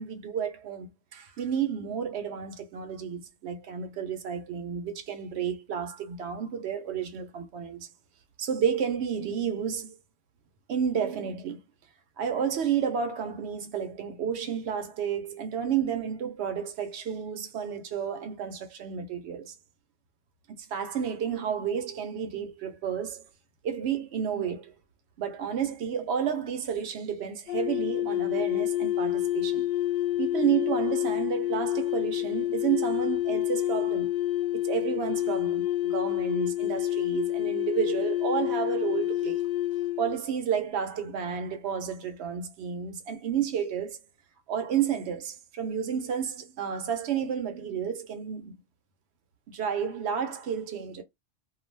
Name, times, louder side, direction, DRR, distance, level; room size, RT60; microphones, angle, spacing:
voice 1, 0.0-7.9 8.4-9.9 10.7-11.6 12.2-19.5 20.5-23.2 23.6-24.7 25.2-29.7 30.2-34.1 34.6-39.4 40.0-44.0 44.5-48.5 49.5-51.0, right 8 dB, 65° right, 0.9 m, -31 dB
sound 1, 27.5-40.2, left 13 dB, 55° left, 0.5 m, -28 dB
2.3 x 2.3 x 3.1 m
omnidirectional pair, 1.2 m